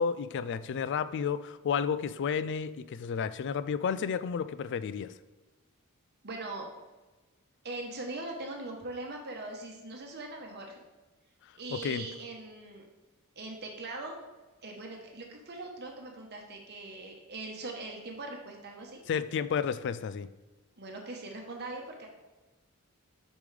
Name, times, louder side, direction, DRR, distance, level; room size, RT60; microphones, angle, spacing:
voice 1, 0.0-5.1 11.7-12.1 19.1-20.3, left 6 dB, 55° left, 14 dB, 0.3 m, -31 dB
voice 2, 6.2-6.7 7.6-10.8 11.5-12.8 13.4-14.2 14.6-19.0 20.8-22.1, right 2 dB, 50° right, 1 dB, 1.0 m, -41 dB
6.8 x 5.2 x 3.3 m, 1.2 s
head